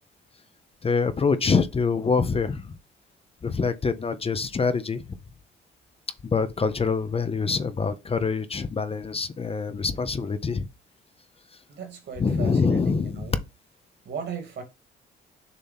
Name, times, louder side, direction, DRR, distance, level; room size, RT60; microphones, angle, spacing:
voice 1, 0.8-2.8 3.4-5.0 6.2-10.7 12.2-13.3, left 5 dB, 30° left, 0.7 m, -25 dB
voice 2, 11.7-13.4 14.0-14.6, right 6 dB, 60° right, 2.6 m, -37 dB
6.8 x 2.8 x 5.7 m
cardioid pair, 90°, 20 cm